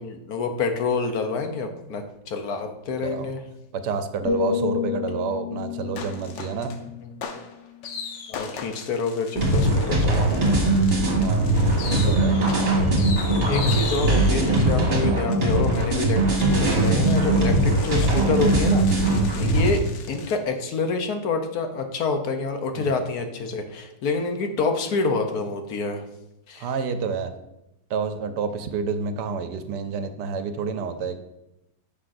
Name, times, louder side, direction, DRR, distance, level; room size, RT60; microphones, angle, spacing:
voice 1, 0.0-3.4 8.3-10.4 13.5-19.8 20.1-26.0 26.5-26.7, left 4 dB, 65° left, 5 dB, 1.2 m, -27 dB
voice 2, 3.0-3.3 3.7-6.7 11.2-12.4 22.7-22.9 26.6-27.3 27.9-31.2, right 5 dB, 75° right, 8 dB, 1.2 m, -29 dB
sound 1, 4.2-8.2 8.6-8.9, left 5 dB, 50° left, 2.1 m, -31 dB
sound 2, 6.0-6.8 7.2-20.4, left 6 dB, 85° left, 1.5 m, -38 dB
sound 3, 9.4-19.7, right 2 dB, 35° right, 1.6 m, -20 dB
9.7 x 6.3 x 2.6 m, 0.87 s
omnidirectional pair, 1.9 m